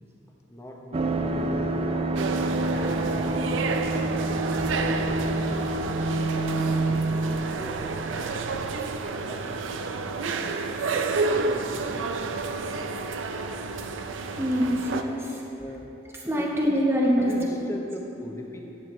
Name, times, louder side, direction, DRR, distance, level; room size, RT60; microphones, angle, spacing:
voice 1, 0.5-2.1 2.7-3.5 4.5-6.1 6.6-8.8 9.1-10.5 11.3-12.4 15.5-15.9 16.4-16.5 17.2-18.6, equal, 15° left, 0 dB, 0.8 m, -40 dB
sound 1, 0.9-9.4 9.7-9.8, right 2 dB, 30° right, 0.4 m, -28 dB
sound 2, 2.1-15.0, right 4 dB, 85° right, 0.5 m, -30 dB
voice 2, 14.4-15.4 16.3-17.3, equal, 15° right, -3 dB, 0.9 m, -24 dB
11.0 x 8.9 x 3.1 m, 2.9 s
head